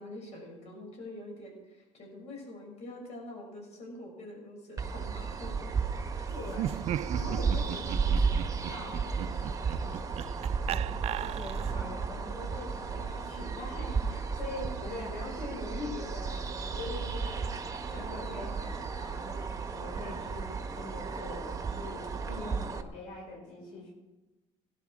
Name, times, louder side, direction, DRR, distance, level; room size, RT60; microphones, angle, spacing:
voice 1, 0.0-5.7 6.1-6.3, left 1 dB, 60° left, 1 dB, 6.4 m, -45 dB
sound 1, 4.8-22.8, right 5 dB, 25° right, 1.4 m, -34 dB
voice 2, 6.3-6.9 7.1-8.4 8.7-17.6 17.9-23.9, left 2 dB, 85° left, -3 dB, 5.1 m, -43 dB
Laughter, 6.5-11.9, right 12 dB, 55° right, 0.4 m, -37 dB
17.5 x 11.5 x 4.8 m, 1.1 s
supercardioid pair, 85°, 13 cm